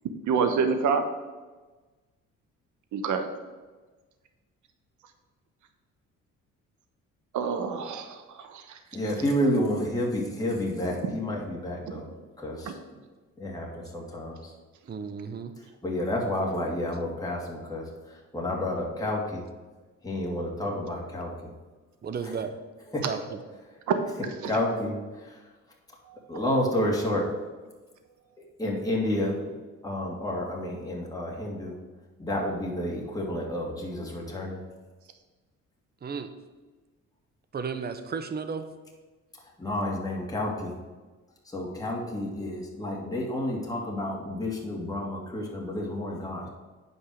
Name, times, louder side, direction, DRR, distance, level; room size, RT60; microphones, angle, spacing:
voice 1, 0.3-1.0 2.9-3.2 7.3-8.8 9.4-9.5 11.0-11.1 12.6-12.7 23.9-24.0 24.4-24.5 26.1-26.2, right 5 dB, 75° right, 7 dB, 1.1 m, -27 dB
voice 2, 8.9-12.1 12.4-12.8 13.4-14.5 15.8-19.4 20.0-21.5 22.9-23.0 24.4-25.4 26.3-27.3 28.6-29.4 29.8-31.8 32.2-34.6 39.6-40.7 41.5-46.5, left 1 dB, 10° left, -3 dB, 2.4 m, -30 dB
voice 3, 14.9-15.5 22.0-22.5 23.0-23.4 36.0-36.3 37.5-38.7, right 5 dB, 35° right, 10 dB, 0.8 m, -33 dB
8.8 x 5.5 x 6.3 m, 1.3 s
cardioid pair, 90°, 30 cm